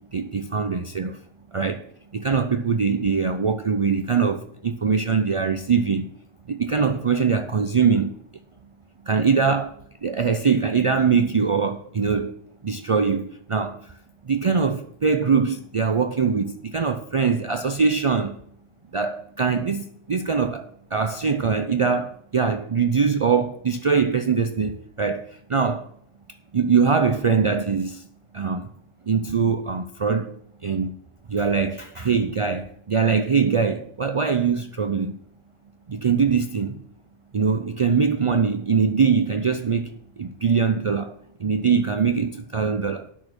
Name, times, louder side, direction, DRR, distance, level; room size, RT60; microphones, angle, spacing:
voice 1, 0.1-1.2 1.5-1.8 2.1-6.0 6.5-8.1 9.1-9.8 10.0-12.3 12.6-13.8 14.3-18.4 18.9-25.9 26.5-28.0 28.3-28.7 29.1-30.3 30.6-30.9 31.3-35.2 35.9-36.7 37.3-39.9 40.2-43.1, right 5 dB, 55° right, 0.3 m, -22 dB
9.1 x 6.4 x 6.1 m
omnidirectional pair, 1.3 m